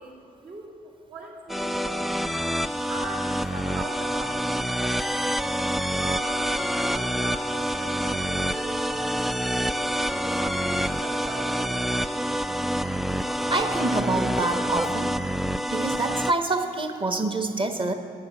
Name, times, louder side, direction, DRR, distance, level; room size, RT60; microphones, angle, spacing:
voice 1, 0.0-2.1 2.9-6.5 6.7-8.9 9.6-12.4, right 2 dB, 65° right, -5 dB, 2.6 m, -40 dB
sound 1, 1.5-16.3, equal, ahead, 0.3 m, -27 dB
voice 2, 13.3-15.1 15.7-17.9, right 2 dB, 30° right, 7 dB, 1.1 m, -27 dB
9.7 x 6.6 x 7.5 m, 2.4 s
hypercardioid pair, 45°, 18 cm